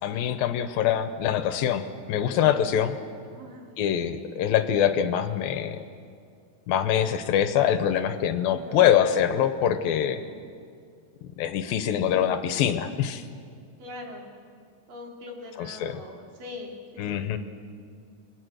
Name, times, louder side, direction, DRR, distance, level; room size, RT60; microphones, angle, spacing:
voice 1, 0.0-3.0 3.8-5.8 6.7-10.2 11.4-13.2 15.6-16.0 17.0-17.4, left 9 dB, 80° left, 10 dB, 2.6 m, -24 dB
voice 2, 3.2-3.7 8.5-8.9 13.8-14.3 14.9-17.2, left 2 dB, 60° right, 0 dB, 4.7 m, -42 dB
29.0 x 23.0 x 6.4 m, 2.3 s
omnidirectional pair, 4.3 m